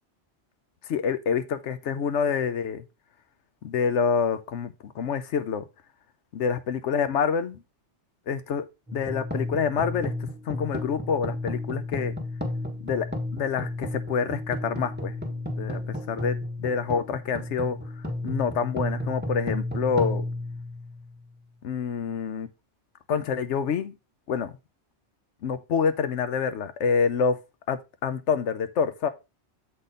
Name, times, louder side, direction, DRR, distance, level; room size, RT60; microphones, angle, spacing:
voice 1, 0.9-2.8 3.6-5.6 6.3-7.6 8.3-8.6 8.9-10.1 10.5-12.1 12.8-13.1 13.3-15.2 15.6-15.8 16.1-17.8 18.2-20.2 21.6-22.5 23.1-23.9 24.3-24.5 25.4-27.4 27.7-29.1, left 6 dB, 80° left, 1.0 m, -27 dB
sound 1, 8.9-21.3, left 1 dB, 10° right, 1.4 m, -32 dB
7.6 x 4.2 x 5.0 m
omnidirectional pair, 1.2 m